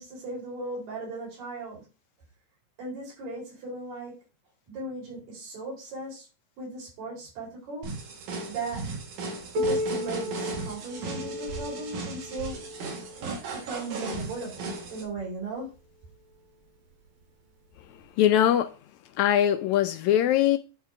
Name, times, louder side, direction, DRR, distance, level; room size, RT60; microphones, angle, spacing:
voice 1, 0.0-1.8 2.8-4.1 4.7-6.3 6.6-7.9 8.5-8.8 9.6-12.6 13.2-15.7, right 2 dB, 85° right, 5.8 m, -37 dB
sound 1, 7.8-15.0, right 3 dB, 70° right, 3.1 m, -36 dB
Piano, 9.5-14.9 15.7-15.8 16.3-16.4 17.2-17.3 18.3-18.4, left 1 dB, 45° right, 2.0 m, -35 dB
voice 2, 18.2-18.7 19.2-20.6, left 11 dB, 85° left, 1.6 m, -21 dB
10.5 x 3.7 x 4.9 m
omnidirectional pair, 3.8 m